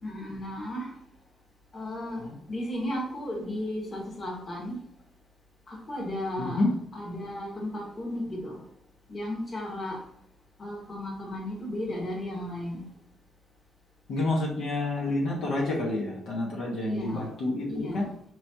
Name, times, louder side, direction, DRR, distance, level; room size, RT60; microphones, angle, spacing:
voice 1, 0.0-0.9 1.7-4.8 5.7-6.6 6.9-8.6 9.1-10.0 10.6-12.9 16.8-17.3 17.7-18.1, left 1 dB, 40° left, -1 dB, 1.4 m, -35 dB
voice 2, 6.4-6.7 14.1-18.1, left 2 dB, 80° left, -4 dB, 1.1 m, -29 dB
4.6 x 3.1 x 2.7 m, 0.64 s
cardioid pair, 90°, 0 cm